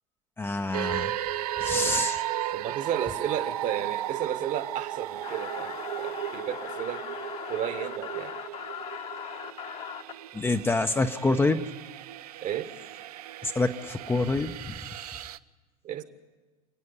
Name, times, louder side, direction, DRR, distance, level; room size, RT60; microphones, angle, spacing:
voice 1, 0.4-1.1 1.6-2.2 10.3-11.7 13.4-14.7, left 2 dB, 10° left, 6 dB, 0.8 m, -27 dB
sound 1, 0.7-15.4, right 13 dB, 75° right, 0.6 m, -35 dB
voice 2, 2.5-7.0 7.5-8.3 12.4-12.7 15.8-16.0, right 10 dB, 40° right, 12 dB, 1.4 m, -33 dB
sound 2, 5.2-10.1, left 8 dB, 30° left, 1.2 m, -39 dB
28.0 x 9.5 x 9.8 m, 1.3 s
hypercardioid pair, 90°, 20 cm